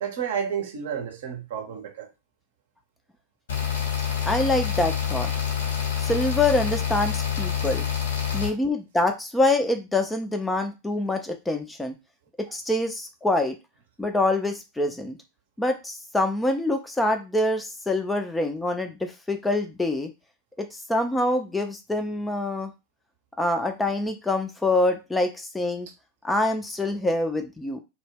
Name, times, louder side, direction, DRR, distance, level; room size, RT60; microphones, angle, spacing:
voice 1, 0.0-2.1, right 7 dB, 55° right, 0.6 m, -31 dB
sound 1, 3.5-8.5, left 8 dB, 65° left, 0.7 m, -27 dB
voice 2, 4.2-5.3 6.0-7.9 8.3-12.0 12.4-13.6 14.0-15.2 15.6-20.1 20.6-22.7 23.4-25.9 26.2-27.8, left 2 dB, 5° left, 0.4 m, -25 dB
2.1 x 2.0 x 3.3 m
figure-of-eight pair, 90°, 0 cm